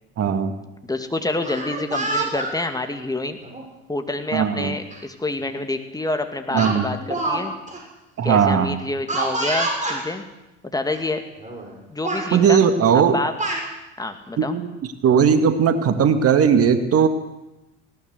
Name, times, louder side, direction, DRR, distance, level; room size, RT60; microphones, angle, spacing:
voice 1, 0.2-0.5 4.3-4.8 6.5-6.9 8.2-8.8 12.3-13.2 14.4-14.7 15.0-17.1, right 7 dB, 40° right, 9 dB, 2.0 m, -18 dB
voice 2, 0.8-3.4 3.9-7.5 8.2-10.2 10.6-11.2 11.9-12.7 12.9-13.3 14.0-14.6, left 2 dB, 10° left, 6 dB, 2.4 m, -27 dB
Speech, 1.4-2.5 3.4-3.6 4.9-5.0 5.4-5.6 6.6-7.4 7.7-7.8 9.1-10.0 10.9-11.0 11.4-11.7 12.0-12.3 13.1-13.6, right 2 dB, 20° right, 7.1 m, -26 dB
19.5 x 18.0 x 8.2 m, 0.98 s
hypercardioid pair, 70°, 36 cm